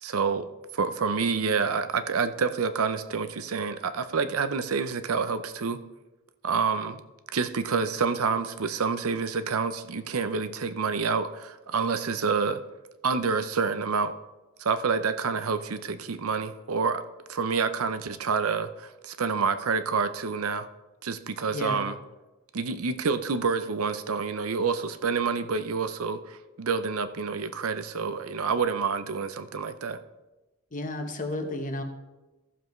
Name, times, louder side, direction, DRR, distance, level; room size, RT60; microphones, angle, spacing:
voice 1, 0.0-0.5 0.7-5.8 6.4-7.0 7.3-12.6 13.0-14.1 14.6-17.0 17.3-20.7 21.0-22.0 22.5-30.0, right 5 dB, 70° right, 11 dB, 0.6 m, -28 dB
voice 2, 21.5-21.8 30.7-31.8, left 1 dB, 35° left, 5 dB, 1.0 m, -32 dB
15.0 x 7.1 x 3.2 m, 1.1 s
head